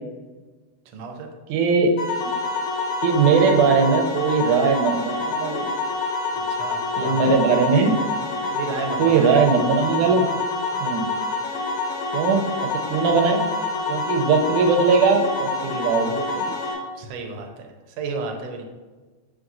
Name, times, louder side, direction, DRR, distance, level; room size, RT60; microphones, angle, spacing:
voice 1, 0.9-1.3 6.5-7.3 8.5-9.2 17.0-18.6, right 4 dB, 70° right, 3 dB, 1.8 m, -32 dB
voice 2, 1.5-2.3 3.0-5.7 7.0-7.9 9.0-10.3 10.8-11.1 12.1-13.4 13.9-16.5, right 5 dB, 90° right, 3 dB, 2.2 m, -20 dB
sound 1, 2.0-16.7, left 3 dB, 80° left, 2.7 m, -27 dB
7.6 x 4.8 x 2.6 m, 1.3 s
omnidirectional pair, 3.4 m